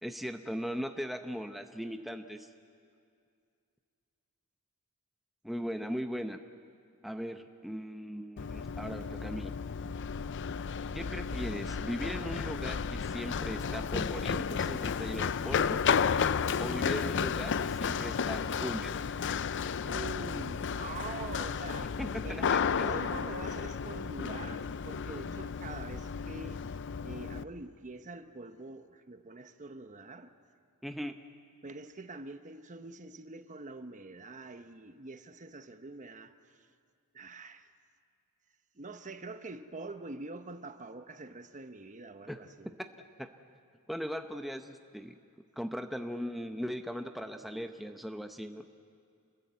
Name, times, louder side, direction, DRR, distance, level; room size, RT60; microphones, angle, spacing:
voice 1, 0.0-2.5 5.4-6.4 7.0-9.5 10.9-15.8 16.2-19.0 22.0-22.9 30.8-31.1 42.3-42.4 43.2-43.3 43.9-45.1 45.6-48.6, equal, ahead, 0.7 m, -39 dB
Run, 8.4-27.4, left 6 dB, 55° left, 0.5 m, -33 dB
voice 2, 19.8-22.0 22.2-22.5 22.8-26.6 27.0-30.3 31.6-36.7 37.1-37.7 38.7-42.7, right 3 dB, 35° right, 1.0 m, -45 dB
28.0 x 21.0 x 8.2 m
head